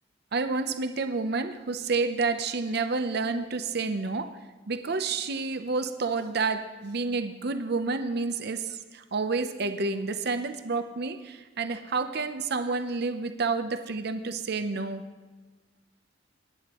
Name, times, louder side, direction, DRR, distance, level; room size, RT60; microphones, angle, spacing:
voice 1, 0.3-4.3 4.7-15.0, right 4 dB, 60° right, 8 dB, 0.7 m, -29 dB
24.0 x 9.4 x 3.0 m, 1.2 s
head